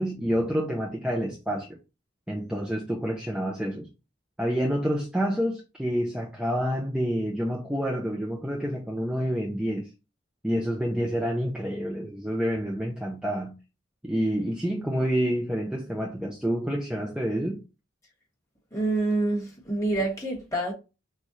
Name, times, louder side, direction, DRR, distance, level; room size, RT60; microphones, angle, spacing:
voice 1, 0.0-1.8 2.3-3.9 4.4-9.9 10.4-13.6 14.0-17.6, equal, 5° right, 0.5 m, -28 dB
voice 2, 18.7-20.7, right 2 dB, 15° left, 1.6 m, -27 dB
6.3 x 2.4 x 3.1 m
head